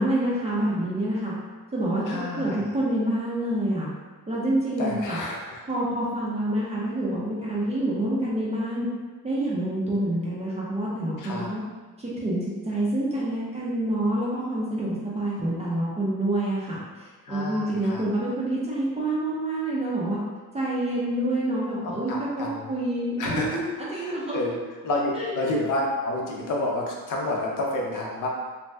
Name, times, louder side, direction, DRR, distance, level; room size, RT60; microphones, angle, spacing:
voice 1, 0.0-1.3 1.7-2.0 2.3-3.9 4.3-5.2 5.7-8.9 9.2-11.6 12.0-12.4 12.7-20.2 20.5-24.4 25.2-25.4, right 1 dB, 20° right, -7 dB, 0.5 m, -27 dB
voice 2, 2.1-2.6 4.8-5.6 11.2-11.5 17.2-18.0 21.8-22.7 23.2-23.6 23.9-24.6 24.8-28.3, left 2 dB, 60° left, -2 dB, 0.6 m, -29 dB
2.7 x 2.1 x 3.2 m, 1.3 s
wide cardioid pair, 180°, 36 cm